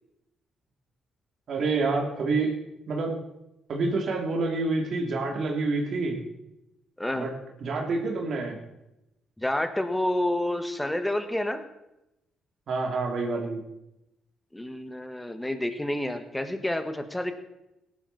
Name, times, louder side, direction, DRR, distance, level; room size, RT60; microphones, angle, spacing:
voice 1, 1.5-2.6 2.9-3.2 3.7-6.2 7.1-7.3 7.6-8.6 12.7-13.6, right 3 dB, 60° right, 1 dB, 2.7 m, -27 dB
voice 2, 7.0-7.3 9.4-11.6 14.5-17.3, left 1 dB, 10° left, 8 dB, 1.5 m, -29 dB
17.0 x 11.5 x 4.1 m, 0.89 s
cardioid pair, 90°, 0 cm